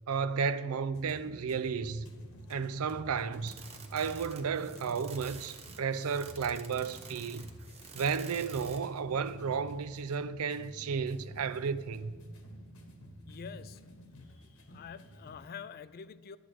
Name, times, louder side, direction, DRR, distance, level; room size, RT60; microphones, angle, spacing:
voice 1, 0.1-2.1 2.5-3.6 3.9-7.5 7.9-12.1, right 6 dB, 80° right, 0.5 m, -33 dB
sound 1, 0.9-15.5, equal, 70° left, 1.3 m, -50 dB
sound 2, 3.4-9.0, right 5 dB, 30° right, 0.9 m, -50 dB
voice 2, 13.2-13.8 14.7-16.4, left 7 dB, 45° left, 0.4 m, -46 dB
11.5 x 8.1 x 4.6 m
head